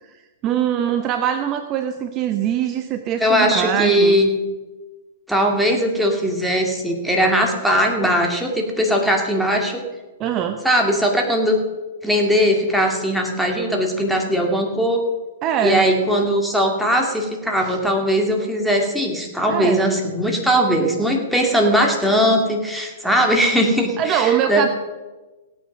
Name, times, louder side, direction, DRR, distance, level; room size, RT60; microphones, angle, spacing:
voice 1, 0.4-4.2 10.2-10.6 15.4-15.9 19.5-19.8 24.0-24.7, right 9 dB, 30° right, 8 dB, 0.9 m, -22 dB
voice 2, 3.2-4.3 5.3-9.8 10.6-11.6 12.0-15.0 15.6-24.7, equal, ahead, 0 dB, 2.2 m, -19 dB
17.0 x 8.8 x 6.0 m, 1.2 s
hypercardioid pair, 135°, 0 cm